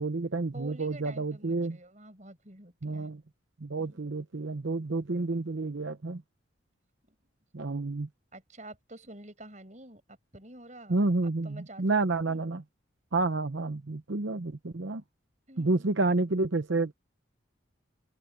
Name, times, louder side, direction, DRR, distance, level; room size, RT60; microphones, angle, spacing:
voice 1, 0.0-1.8 2.8-3.2 3.6-6.2 7.5-8.1 10.9-12.6 13.1-15.0 15.6-16.9, right 3 dB, 70° right, 0.8 m, -29 dB
voice 2, 0.5-3.1 3.8-4.2 7.1-7.2 8.3-11.0 11.2-11.8 12.2-12.5 15.5-15.8, right 1 dB, 40° right, 7.8 m, -49 dB
open air
head